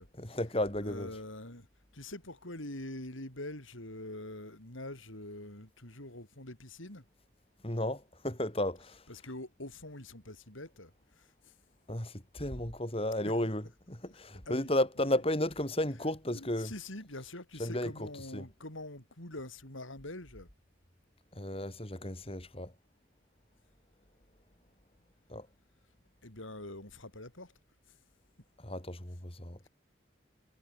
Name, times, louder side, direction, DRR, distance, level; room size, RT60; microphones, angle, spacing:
voice 1, 0.2-1.1 7.6-9.0 11.9-16.7 17.6-18.5 21.3-22.7 25.3-25.5 28.6-29.7, left 1 dB, 30° left, 4.4 m, -33 dB
voice 2, 0.8-1.7 1.9-7.0 9.1-11.5 13.2-13.3 14.5-14.7 15.0-15.1 16.3-20.5 26.2-27.5 27.9-28.0, left 1 dB, 90° left, 6.9 m, -44 dB
head